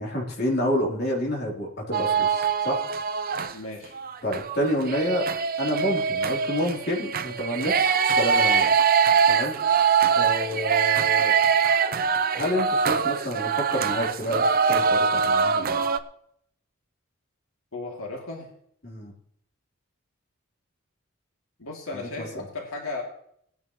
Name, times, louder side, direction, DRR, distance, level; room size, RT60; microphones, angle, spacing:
voice 1, 0.0-2.8 4.2-5.3 5.6-8.7 9.3-9.5 10.1-11.4 12.3-15.8 18.8-19.1 21.9-22.4, equal, 50° left, -3 dB, 3.4 m, -29 dB
sound 1, 1.9-3.5 3.9-16.0, right 6 dB, 45° right, 0.6 m, -23 dB
voice 2, 3.5-4.0 17.7-18.5 21.6-23.0, left 2 dB, 85° left, -1 dB, 2.7 m, -35 dB
19.0 x 10.5 x 3.1 m, 0.68 s
head